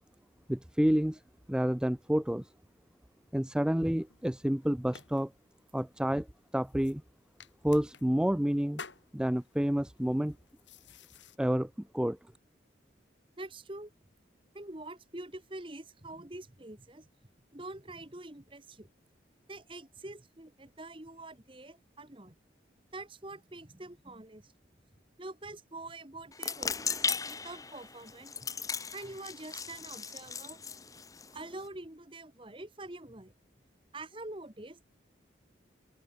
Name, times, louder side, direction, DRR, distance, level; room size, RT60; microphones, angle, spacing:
voice 1, 0.5-1.2 1.5-2.5 3.3-5.3 5.7-6.3 6.5-7.0 7.6-8.8 9.1-10.4 11.4-12.2, equal, 5° right, 0.3 m, -29 dB
sound 1, 3.8-11.4, left 5 dB, 85° left, 4.9 m, -54 dB
voice 2, 13.4-13.9 14.5-17.1 17.5-18.9 19.5-22.4 22.9-24.5 25.2-28.5 28.9-30.6 31.3-33.3 33.9-34.9, right 2 dB, 30° right, 1.6 m, -45 dB
sound 2, 26.3-31.7, left 5 dB, 20° left, 1.5 m, -37 dB
open air
head